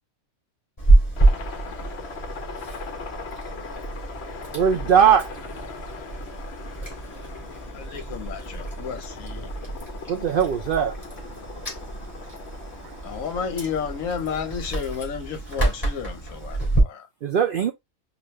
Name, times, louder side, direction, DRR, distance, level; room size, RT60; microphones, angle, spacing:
Chewing mastication, 0.8-16.8, right 2 dB, 25° left, 2.4 m, -27 dB
Aircraft, 1.2-14.6, left 4 dB, 55° left, 1.0 m, -40 dB
voice 1, 4.5-5.4 10.1-10.9 17.2-17.7, right 8 dB, 90° right, 0.4 m, -20 dB
voice 2, 7.7-9.5 13.0-17.1, left 6 dB, 70° left, 1.2 m, -32 dB
voice 3, 11.3-13.2 16.5-16.6, right 10 dB, 70° right, 0.9 m, -51 dB
5.0 x 2.5 x 3.1 m
omnidirectional pair, 1.5 m